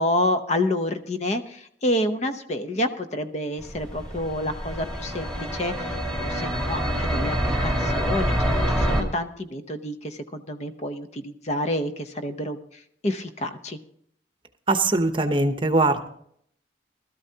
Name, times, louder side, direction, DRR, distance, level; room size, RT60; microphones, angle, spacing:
voice 1, 0.0-12.6 13.0-13.8, left 1 dB, 35° left, 8 dB, 0.8 m, -28 dB
sound 1, 3.6-9.0, equal, 5° left, 2.1 m, -26 dB
voice 2, 14.7-16.1, right 2 dB, 25° right, 8 dB, 0.8 m, -21 dB
20.0 x 13.0 x 2.8 m, 0.66 s
head